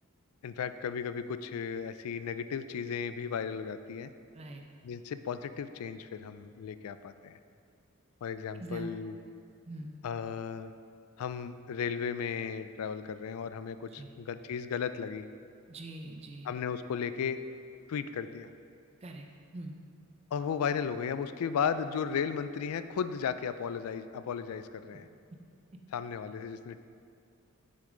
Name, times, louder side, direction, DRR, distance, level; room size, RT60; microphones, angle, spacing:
voice 1, 0.4-4.1 4.8-7.4 8.2-9.2 10.0-10.7 11.2-15.3 16.5-17.4 17.9-18.5 20.3-25.1 25.9-26.8, left 6 dB, 80° left, 12 dB, 0.3 m, -35 dB
voice 2, 4.3-4.6 8.6-8.9 9.6-10.0 14.0-14.1 15.7-16.5 19.0-19.3 19.5-19.8, right 2 dB, 30° right, 3 dB, 0.5 m, -43 dB
6.9 x 6.5 x 3.8 m, 2.3 s
head